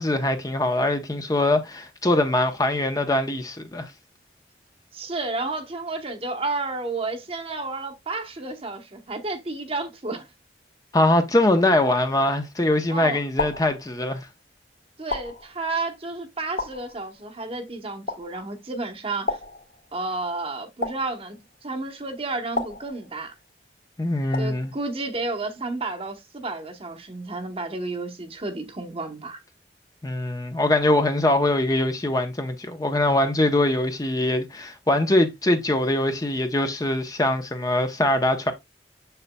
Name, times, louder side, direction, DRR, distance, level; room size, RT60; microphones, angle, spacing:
voice 1, 0.0-3.9 10.9-14.3 24.0-24.7 30.0-38.5, left 1 dB, 20° left, 0.7 m, -22 dB
voice 2, 4.9-10.3 12.9-13.2 15.0-19.4 19.9-23.3 24.4-29.4, right 3 dB, 30° right, 1.0 m, -31 dB
sound 1, 12.2-12.7 13.4-14.3 15.1-16.0 16.6-17.4 18.1-18.7 19.3-20.2 20.8-21.7 22.5-23.5 24.3-24.9, left 2 dB, 50° left, 1.4 m, -34 dB
6.8 x 6.5 x 2.2 m
head